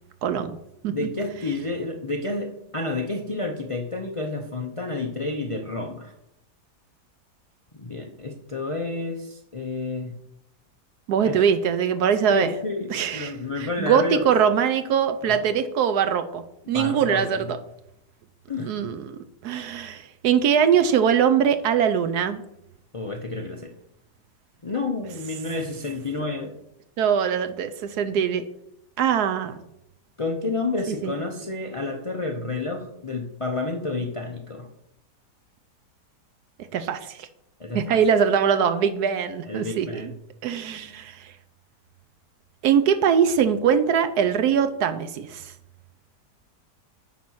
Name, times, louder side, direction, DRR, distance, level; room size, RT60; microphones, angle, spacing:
voice 1, 0.2-0.6 0.8-0.9 11.1-12.5 12.9-13.3 13.6-17.4 18.6-22.4 27.0-28.4 29.0-29.6 30.9-31.1 36.7-37.3 37.7-40.1 40.4-41.3 42.6-45.5, right 7 dB, 70° right, 10 dB, 1.1 m, -22 dB
voice 2, 0.9-6.1 7.7-10.2 11.2-11.4 12.3-14.3 15.2-15.4 16.7-17.6 18.5-18.8 22.9-23.7 24.6-26.5 30.2-34.7 37.6-38.0 39.4-40.2, left 3 dB, 55° left, 2 dB, 0.3 m, -30 dB
9.4 x 4.2 x 6.2 m, 0.80 s
omnidirectional pair, 1.8 m